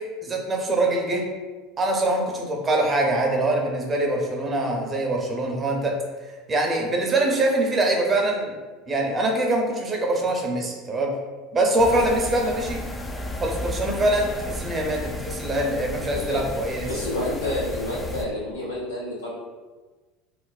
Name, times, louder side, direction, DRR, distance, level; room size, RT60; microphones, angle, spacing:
voice 1, 0.2-1.3 1.8-5.9 6.5-8.5 8.9-11.1 11.5-12.8 13.4-16.9, right 1 dB, 30° right, 0 dB, 0.7 m, -23 dB
sound 1, 11.8-18.3, left 1 dB, 15° left, 0.4 m, -33 dB
voice 2, 16.1-16.4 16.9-19.3, left 1 dB, 85° left, -7 dB, 0.9 m, -29 dB
2.5 x 2.0 x 3.9 m, 1.3 s
figure-of-eight pair, 75°, 0 cm